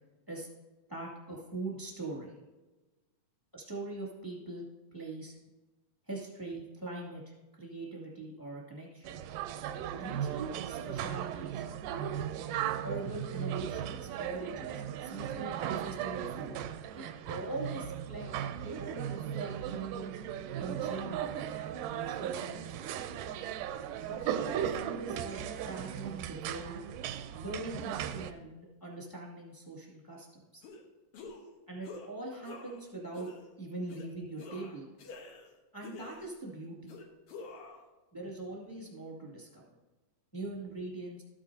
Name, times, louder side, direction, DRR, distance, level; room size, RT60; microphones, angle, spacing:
voice 1, 0.9-2.3 3.5-4.7 4.9-5.4 6.0-9.1 9.9-12.1 12.8-16.7 16.9-20.1 20.6-22.8 24.1-26.8 27.3-30.3 30.5-30.6 31.7-33.3 33.6-34.9 35.7-36.9 38.1-39.8 40.3-41.2, right 2 dB, 10° left, -4 dB, 1.5 m, -42 dB
sound 1, 9.0-28.3, right 9 dB, 85° right, 2.1 m, -37 dB
sound 2, 30.6-30.8 31.1-31.5 31.8-32.1 32.4-32.8 33.1-33.4 33.9-34.1 34.4-35.5 35.8-36.4 36.9-37.8, left 3 dB, 60° left, 1.7 m, -47 dB
13.5 x 8.8 x 2.7 m, 1.1 s
omnidirectional pair, 3.7 m